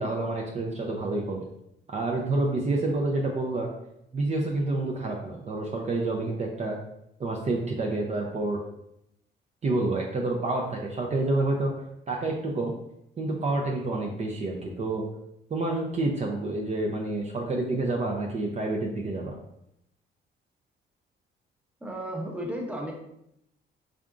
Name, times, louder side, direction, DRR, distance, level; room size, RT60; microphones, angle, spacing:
voice 1, 0.0-1.4 1.9-3.7 4.1-6.8 7.2-8.6 9.6-11.7 12.1-12.7 13.2-15.0 15.5-19.4, right 2 dB, 35° right, -1 dB, 0.5 m, -28 dB
voice 2, 21.8-22.9, right 1 dB, 5° right, 0 dB, 0.8 m, -33 dB
3.7 x 3.4 x 2.4 m, 0.79 s
cardioid pair, 90°, 20 cm